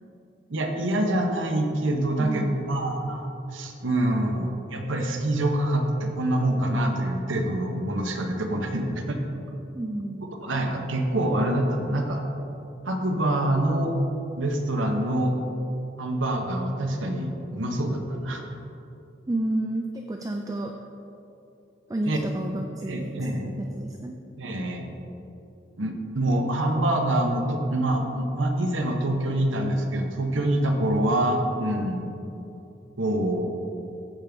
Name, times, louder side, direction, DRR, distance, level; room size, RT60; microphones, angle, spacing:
voice 1, 0.5-9.2 10.4-12.2 12.8-13.9 14.4-15.4 16.0-18.4 22.1-22.2 22.8-23.6 24.4-24.8 25.8-32.1 33.0-33.5, right 1 dB, 85° right, 3 dB, 1.0 m, -25 dB
voice 2, 2.2-2.6 9.7-10.3 19.3-20.7 21.9-23.1 23.6-24.2, right 1 dB, 20° right, 3 dB, 0.3 m, -30 dB
15.0 x 5.3 x 3.5 m, 2.9 s
head